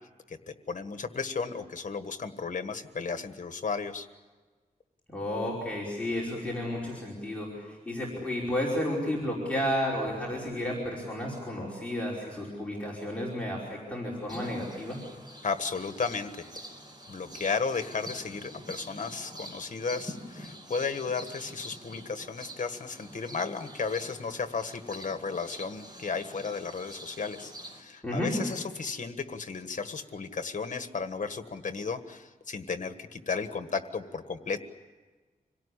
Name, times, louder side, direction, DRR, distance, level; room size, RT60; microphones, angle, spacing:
voice 1, 0.3-4.1 15.4-16.5 17.1-34.6, left 5 dB, 55° left, 9 dB, 1.6 m, -34 dB
voice 2, 5.1-15.0 28.0-28.3, left 1 dB, 10° left, -5 dB, 5.1 m, -32 dB
sound 1, 14.3-27.8, equal, 30° right, 4.2 m, -46 dB
26.5 x 18.0 x 10.0 m, 1.3 s
wide cardioid pair, 140°, 15 cm